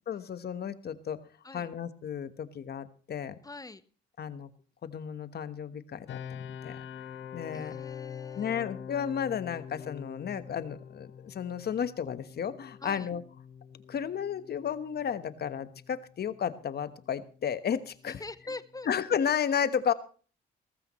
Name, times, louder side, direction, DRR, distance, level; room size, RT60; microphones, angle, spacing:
voice 1, 0.1-1.2 1.5-3.3 4.2-4.5 4.8-6.8 7.3-7.7 8.4-13.2 13.9-18.2 18.9-19.9, left 8 dB, 55° left, 13 dB, 1.2 m, -33 dB
voice 2, 3.4-3.8 7.5-8.5 12.8-13.1 18.0-18.9, left 3 dB, 20° left, 16 dB, 0.8 m, -43 dB
sound 1, 6.1-18.9, left 8 dB, 70° left, 1.2 m, -46 dB
18.0 x 14.5 x 3.1 m, 0.40 s
cardioid pair, 90°, 20 cm